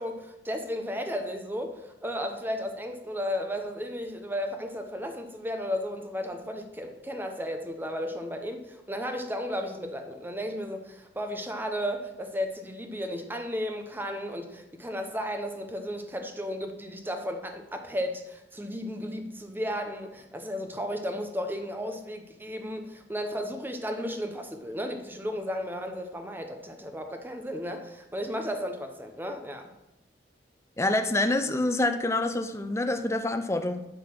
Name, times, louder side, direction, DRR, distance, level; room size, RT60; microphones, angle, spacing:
voice 1, 0.0-29.7, equal, 10° right, 6 dB, 0.8 m, -34 dB
voice 2, 30.8-33.9, left 2 dB, 15° left, 7 dB, 0.5 m, -26 dB
10.5 x 3.9 x 6.1 m, 0.93 s
head